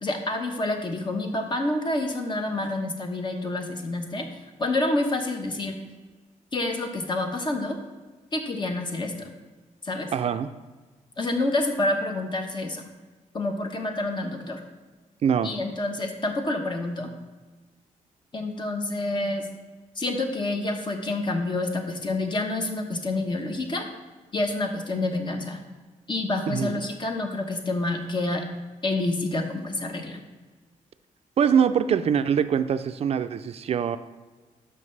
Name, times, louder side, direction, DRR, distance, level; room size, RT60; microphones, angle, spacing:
voice 1, 0.0-4.3 4.6-5.8 6.5-7.8 8.3-9.3 9.8-10.1 11.2-12.8 13.3-14.6 15.4-17.1 18.3-19.5 20.0-23.9 24.3-25.6 26.1-28.5 28.8-30.2, left 2 dB, 35° left, 4 dB, 1.0 m, -28 dB
voice 2, 10.1-10.5 15.2-15.5 26.5-26.8 31.4-34.0, right 7 dB, 50° right, 11 dB, 0.4 m, -23 dB
12.5 x 5.6 x 3.3 m, 1.3 s
cardioid pair, 130°, 13 cm